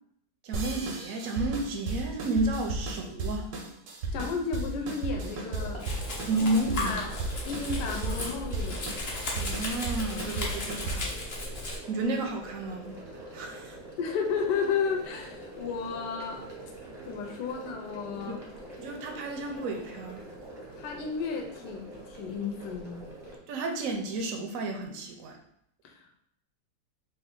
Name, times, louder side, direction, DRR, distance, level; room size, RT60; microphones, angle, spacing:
voice 1, 0.4-3.5 6.3-7.1 9.3-11.1 11.9-13.0 13.3-13.8 18.3-18.4 18.8-20.2 23.5-25.4, right 2 dB, 70° right, 3 dB, 0.8 m, -32 dB
sound 1, 0.5-11.2, right 2 dB, 85° right, 1.4 m, -35 dB
voice 2, 4.1-5.8 6.4-6.5 6.8-7.1 7.4-8.8 14.0-16.5 17.1-18.4 20.8-23.0 25.8-26.2, left 5 dB, 80° left, 1 dB, 1.2 m, -33 dB
sound 2, 5.1-23.4, right 1 dB, 30° right, 0.5 m, -45 dB
Domestic sounds home sounds, 5.8-11.8, left 2 dB, 50° left, 0.8 m, -36 dB
3.4 x 2.5 x 3.6 m, 0.72 s
omnidirectional pair, 1.9 m